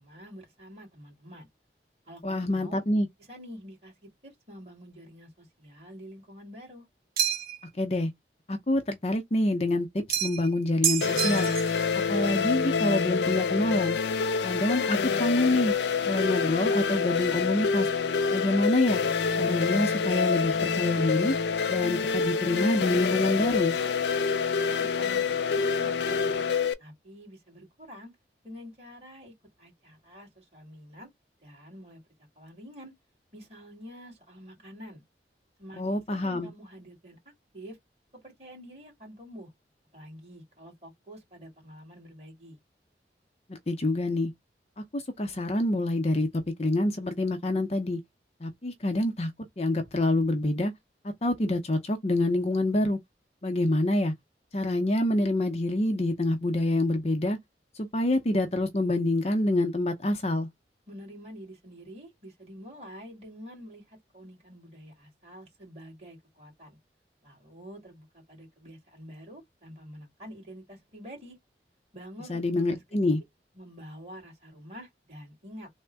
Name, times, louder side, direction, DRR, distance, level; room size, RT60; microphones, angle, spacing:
voice 1, 0.0-1.5 2.1-2.8 3.3-6.9 24.7-26.5 26.8-28.1 28.4-31.1 31.4-32.0 32.4-32.9 33.3-35.0 35.6-37.8 38.2-39.5 39.9-42.6 60.9-66.8 67.2-71.4 71.9-72.8 73.5-75.7, equal, 35° right, 2.2 m, -47 dB
voice 2, 2.2-3.1 7.8-8.1 8.5-11.5 12.1-14.0 14.4-15.7 16.0-17.9 18.3-19.0 19.4-21.4 21.7-23.8 35.8-36.5 43.5-44.3 44.8-48.0 48.4-49.3 49.6-50.7 51.2-53.0 53.4-54.1 54.5-57.4 57.8-60.5 72.3-73.2, left 1 dB, 35° left, 0.6 m, -26 dB
sound 1, 7.2-7.7 10.1-10.5 10.8-11.8, right 10 dB, 55° right, 0.7 m, -28 dB
sound 2, 11.0-26.7, left 5 dB, 80° left, 0.4 m, -27 dB
3.5 x 2.1 x 3.2 m
head